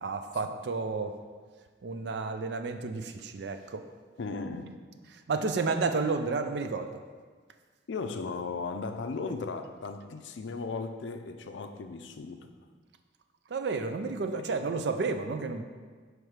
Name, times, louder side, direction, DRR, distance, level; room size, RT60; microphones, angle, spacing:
voice 1, 0.0-1.2 1.8-3.8 5.1-7.0 13.5-15.6, right 4 dB, 65° right, 8 dB, 0.4 m, -31 dB
voice 2, 4.2-4.7 7.9-12.5 14.3-14.5, left 4 dB, 80° left, 7 dB, 0.4 m, -36 dB
6.5 x 3.3 x 4.7 m, 1.5 s
head